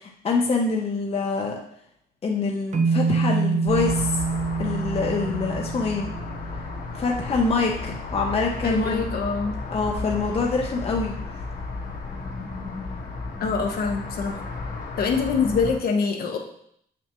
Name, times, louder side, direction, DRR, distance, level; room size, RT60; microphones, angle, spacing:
voice 1, 0.0-1.6 2.2-4.2 4.6-6.1 6.9-9.1 9.7-11.1, left 4 dB, 35° left, 0 dB, 0.9 m, -25 dB
sound 1, 2.7-7.0, right 4 dB, 45° right, 0.6 m, -26 dB
sound 2, 3.7-15.8, left 3 dB, 90° left, 2.5 m, -34 dB
voice 2, 8.6-9.5 13.4-14.3 14.9-16.4, left 5 dB, 65° left, 1 dB, 1.2 m, -24 dB
7.1 x 6.0 x 3.1 m, 0.69 s
cardioid pair, 130°, 17 cm